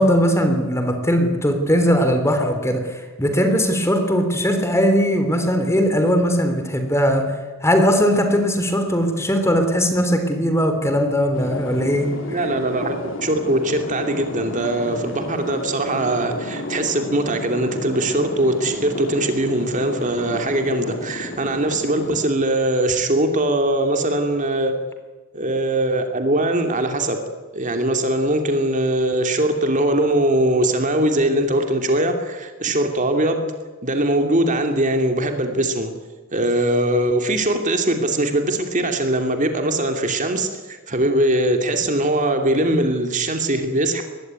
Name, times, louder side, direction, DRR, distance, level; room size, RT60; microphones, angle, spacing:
voice 1, 0.0-7.2 7.6-12.4, equal, 15° left, 6 dB, 3.5 m, -19 dB
sound 1, 11.3-22.2, left 1 dB, 70° left, 3.6 m, -32 dB
voice 2, 12.3-24.8 25.3-27.2 27.5-33.5 33.8-35.9 36.3-44.0, right 1 dB, 40° right, 5 dB, 2.7 m, -21 dB
22.5 x 20.5 x 9.6 m, 1.3 s
head